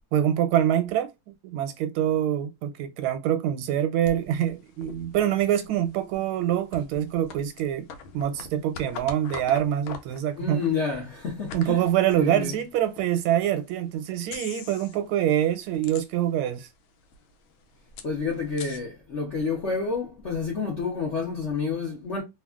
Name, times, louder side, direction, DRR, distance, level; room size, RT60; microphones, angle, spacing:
voice 1, 0.1-1.1 1.4-7.9 8.1-10.6 11.5-16.7, right 11 dB, 85° right, 1.4 m, -25 dB
sound 1, 4.0-13.1 13.6-13.7 14.2-15.1 15.4-16.5 16.8-16.9 17.1-18.8, left 5 dB, 80° left, 1.4 m, -43 dB
voice 2, 10.4-11.8 12.1-12.5 18.0-22.2, left 5 dB, 65° left, 0.7 m, -29 dB
3.3 x 2.3 x 2.3 m
omnidirectional pair, 2.3 m